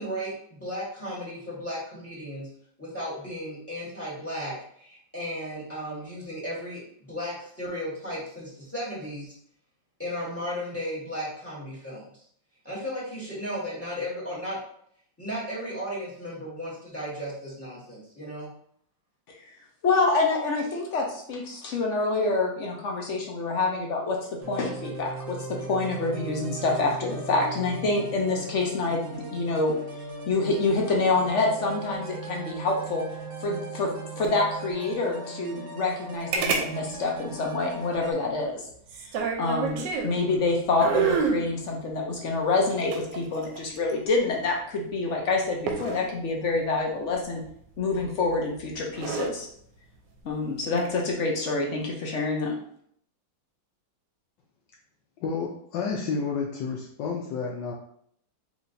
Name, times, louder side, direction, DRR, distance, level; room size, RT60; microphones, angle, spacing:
voice 1, 0.0-2.5 2.8-9.3 10.0-12.1 12.6-14.6 15.2-18.5, equal, 10° left, -7 dB, 1.3 m, -35 dB
voice 2, 19.8-24.2 24.5-29.7 30.3-33.0 33.4-38.6 39.0-39.1 39.4-47.4 47.8-49.5 50.2-52.5, left 3 dB, 55° left, 0 dB, 0.8 m, -27 dB
sound 1, 24.4-38.1, right 3 dB, 45° right, 1.0 m, -38 dB
sound 2, 36.3-36.7 36.9-37.0 38.9-40.2 40.8-41.4 42.7-43.9 45.7-46.0 47.9-48.3 48.8-49.3 50.6-51.0, right 5 dB, 75° right, 1.2 m, -28 dB
voice 3, 55.2-57.7, left 5 dB, 75° left, 0 dB, 1.3 m, -30 dB
4.7 x 3.2 x 2.6 m, 0.65 s
omnidirectional pair, 2.1 m